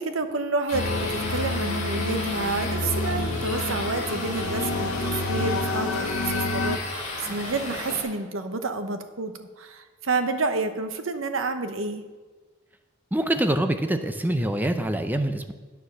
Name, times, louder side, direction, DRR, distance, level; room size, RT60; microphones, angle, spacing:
voice 1, 0.0-12.1, right 3 dB, 90° right, 8 dB, 0.9 m, -29 dB
sound 1, 0.7-6.8, left 2 dB, 80° left, 0.7 m, -29 dB
sound 2, 0.7-8.0, left 2 dB, 40° left, 2.8 m, -34 dB
voice 2, 13.1-15.5, right 1 dB, 10° right, 7 dB, 0.6 m, -25 dB
9.3 x 6.8 x 6.3 m, 1.3 s
head